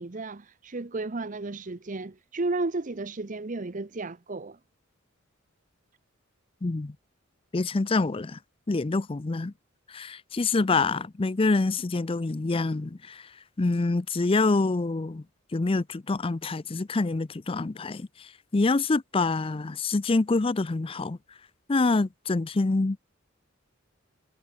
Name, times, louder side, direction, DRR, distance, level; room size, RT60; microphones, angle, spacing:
voice 1, 0.0-4.6, right 3 dB, 40° right, 0.8 m, -33 dB
voice 2, 6.6-7.0 7.5-8.4 8.7-9.5 9.9-13.3 13.6-15.2 15.5-21.2 21.7-23.0, left 3 dB, 25° left, 0.5 m, -26 dB
head